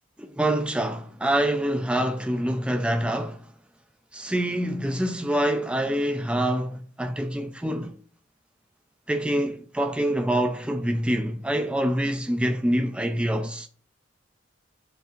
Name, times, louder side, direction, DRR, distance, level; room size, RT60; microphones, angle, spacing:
voice 1, 0.2-3.5 4.1-8.0 9.1-13.7, right 1 dB, 5° right, 0.4 m, -26 dB
8.0 x 2.7 x 2.4 m
head